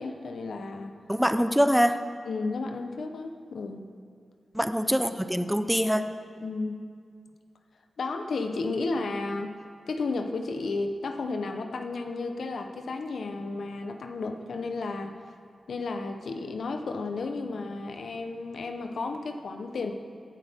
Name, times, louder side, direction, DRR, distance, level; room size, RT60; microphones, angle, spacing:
voice 1, 0.0-0.9 2.3-3.8 6.4-6.8 8.0-9.6 9.9-15.2 15.7-19.9, left 3 dB, 75° left, 5 dB, 1.0 m, -33 dB
voice 2, 1.1-2.0 4.5-6.1, equal, 5° right, 9 dB, 0.7 m, -24 dB
17.5 x 10.5 x 3.7 m, 2.1 s
cardioid pair, 50°, 0 cm